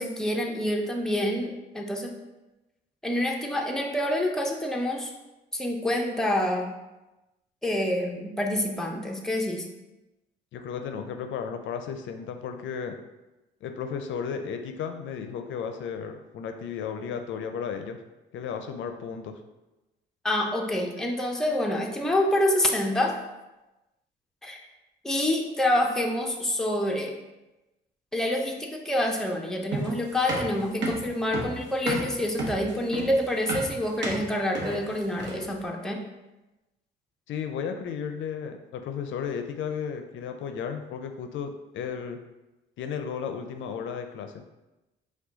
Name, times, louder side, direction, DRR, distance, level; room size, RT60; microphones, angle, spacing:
voice 1, 0.0-2.1 3.0-5.1 5.5-6.7 7.6-9.7 20.2-23.2 24.4-24.6 25.0-27.2 28.1-36.0, left 1 dB, 5° left, 1 dB, 0.6 m, -27 dB
voice 2, 10.5-13.0 13.6-18.0 18.3-19.4 37.3-42.2 42.8-44.4, left 7 dB, 75° left, 6 dB, 0.4 m, -34 dB
sound 1, 29.7-35.6, right 2 dB, 65° right, 1.0 m, -32 dB
4.7 x 2.3 x 3.9 m, 1.0 s
cardioid pair, 90°, 20 cm